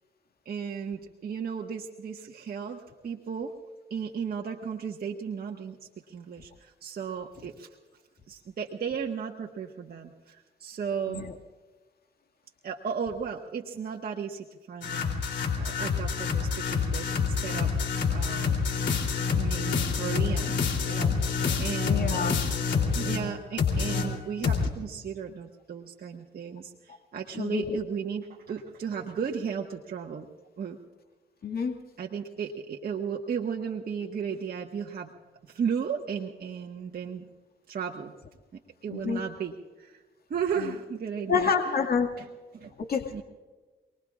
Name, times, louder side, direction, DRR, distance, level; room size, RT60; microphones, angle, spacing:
voice 1, 0.4-3.5 3.9-5.8 6.1-7.7 8.3-11.2 12.6-15.2 15.6-17.8 18.1-18.8 19.3-21.2 21.6-22.4 22.9-30.3 30.6-30.8 32.0-35.1 35.5-37.3 37.7-38.1 38.5-40.0 40.3-41.8 42.2-42.3 42.5-42.7 43.1-43.2, right 6 dB, 55° right, 0 dB, 1.5 m, -35 dB
sound 1, 14.8-23.3 23.6-24.7, left 5 dB, 75° left, 3.3 m, -27 dB
voice 2, 21.8-22.3 27.4-27.8 31.4-31.7 38.9-39.2 41.3-42.1 42.8-43.2, left 6 dB, 55° left, 2 dB, 2.1 m, -28 dB
28.5 x 20.5 x 2.5 m, 1.3 s
cardioid pair, 65°, 19 cm